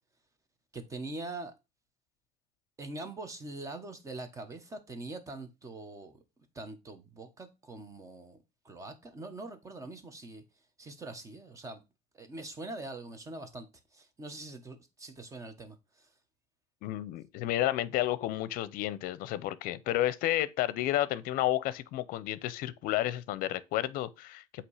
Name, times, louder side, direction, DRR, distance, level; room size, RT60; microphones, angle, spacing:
voice 1, 0.7-1.5 2.8-6.2 6.5-8.4 8.6-10.4 10.8-11.8 12.1-13.7 13.9-16.1, right 2 dB, 20° right, 1.1 m, -43 dB
voice 2, 16.8-24.6, left 14 dB, 60° left, 0.6 m, -31 dB
8.1 x 3.0 x 4.8 m
cardioid pair, 145°, 17 cm